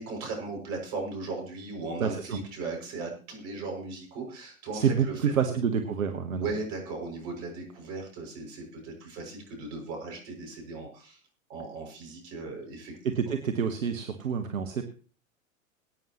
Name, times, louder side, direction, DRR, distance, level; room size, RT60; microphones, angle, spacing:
voice 1, 0.0-5.5 6.4-11.2 11.5-12.9, right 3 dB, 40° right, 2 dB, 6.4 m, -37 dB
voice 2, 2.0-2.4 4.7-6.5 13.0-14.9, right 7 dB, 70° right, 7 dB, 1.3 m, -28 dB
23.0 x 9.2 x 3.0 m, 0.38 s
figure-of-eight pair, 100°, 41 cm